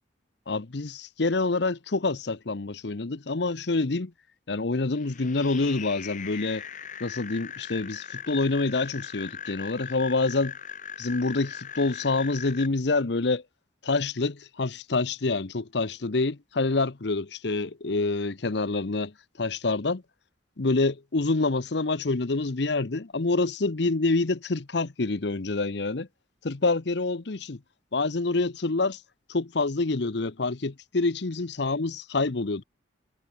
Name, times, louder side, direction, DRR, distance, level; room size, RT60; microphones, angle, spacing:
voice 1, 0.5-4.1 4.5-6.6 7.0-10.6 11.0-13.4 13.8-20.0 20.6-26.1 26.4-27.6 27.9-29.0 29.3-32.6, left 3 dB, 65° left, 0.9 m, -27 dB
sound 1, 4.9-12.7, left 8 dB, 40° left, 2.6 m, -40 dB
head